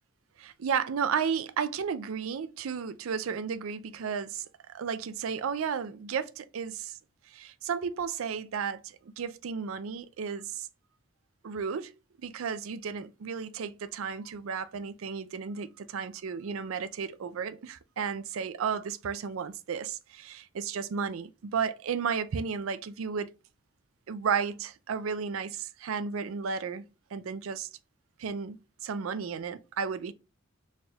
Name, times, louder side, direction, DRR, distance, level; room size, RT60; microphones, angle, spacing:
voice 1, 0.4-6.9 7.3-10.7 11.4-11.9 12.2-23.3 24.1-27.7 28.2-30.1, right 6 dB, 85° right, 0.4 m, -33 dB
4.3 x 3.5 x 2.3 m
head